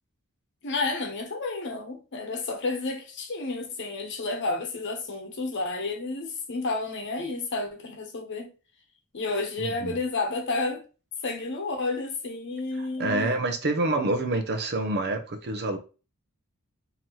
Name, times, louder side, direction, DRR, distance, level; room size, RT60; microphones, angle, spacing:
voice 1, 0.6-8.5 9.1-10.8 11.2-13.4, left 3 dB, 55° left, 0.9 m, -31 dB
voice 2, 9.6-10.0 13.0-15.8, right 2 dB, 50° right, 0.6 m, -27 dB
3.9 x 2.8 x 3.0 m
head